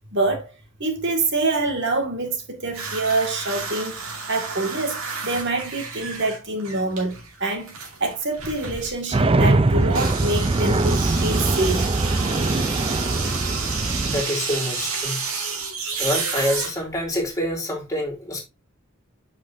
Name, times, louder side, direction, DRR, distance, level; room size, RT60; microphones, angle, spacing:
voice 1, 0.1-0.5 0.8-4.0 4.3-11.9, right 2 dB, 55° right, 2.0 m, -26 dB
sound 1, 2.7-9.2 9.8-17.3, right 4 dB, 80° right, 2.5 m, -30 dB
sound 2, 9.1-14.2, right 2 dB, 25° right, 0.5 m, -21 dB
voice 2, 14.0-15.3 16.0-18.4, left 1 dB, 15° left, 2.6 m, -26 dB
8.1 x 5.6 x 2.7 m
head